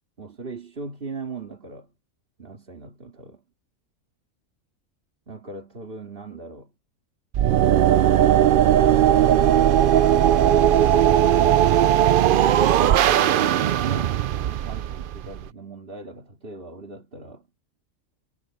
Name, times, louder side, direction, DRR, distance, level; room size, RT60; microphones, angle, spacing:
voice 1, 0.2-1.9 2.4-3.4 5.3-6.7 8.1-9.7 12.9-17.5, right 4 dB, 40° right, 2.7 m, -39 dB
sound 1, 7.3-15.5, right 10 dB, 70° right, 0.5 m, -18 dB
omnidirectional pair, 1.4 m